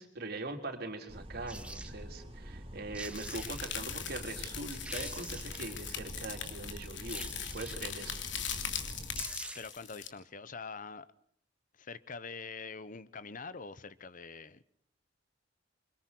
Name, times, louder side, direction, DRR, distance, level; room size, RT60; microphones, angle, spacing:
voice 1, 0.0-7.2 7.5-8.2, right 2 dB, 55° right, 4.2 m, -42 dB
sound 1, 1.1-9.2, equal, 30° right, 3.0 m, -46 dB
sound 2, 1.5-1.9 2.7-2.8 2.9-3.8 4.3-4.4 4.7-5.8 7.1-8.0 8.8-8.9 9.1-9.9 10.2-10.3, right 2 dB, 5° right, 1.8 m, -46 dB
sound 3, 3.1-10.1, left 9 dB, 70° left, 3.1 m, -40 dB
voice 2, 9.5-11.1 11.8-14.6, left 4 dB, 45° left, 1.0 m, -44 dB
28.5 x 24.5 x 4.6 m
head